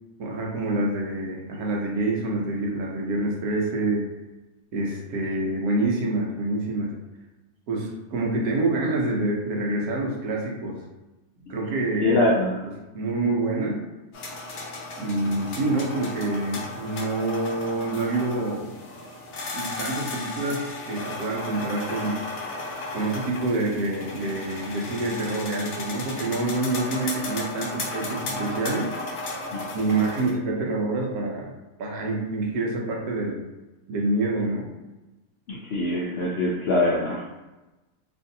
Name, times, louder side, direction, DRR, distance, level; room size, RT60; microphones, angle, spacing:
voice 1, 0.2-4.0 4.7-6.9 7.7-10.8 11.5-12.2 12.9-13.8 15.0-18.7 19.5-22.2 22.9-29.0 29.7-31.5 31.8-33.4 33.9-34.7, right 2 dB, 85° right, -1 dB, 1.2 m, -27 dB
voice 2, 12.0-12.6 35.5-37.2, left 2 dB, 75° left, -4 dB, 0.5 m, -23 dB
sound 1, 14.1-30.3, left 2 dB, 60° left, 1.0 m, -35 dB
3.0 x 2.5 x 2.6 m, 1.1 s
omnidirectional pair, 1.6 m